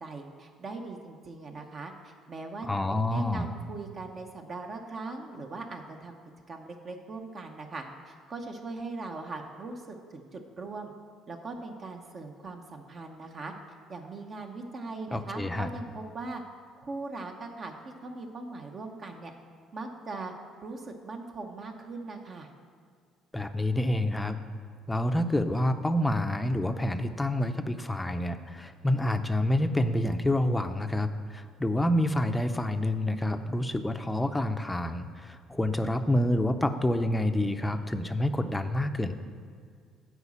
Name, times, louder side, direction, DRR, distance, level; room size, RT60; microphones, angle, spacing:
voice 1, 0.0-6.2 6.5-10.9 11.3-13.5 13.9-16.4 16.8-17.7 18.0-19.3 19.7-20.3 20.6-22.5, right 3 dB, 45° right, 3 dB, 0.8 m, -40 dB
voice 2, 2.6-3.5 15.1-15.7 23.3-24.4 24.9-39.1, left 1 dB, 10° left, 8 dB, 0.5 m, -28 dB
8.1 x 4.9 x 7.2 m, 2.1 s
supercardioid pair, 80°, 0 cm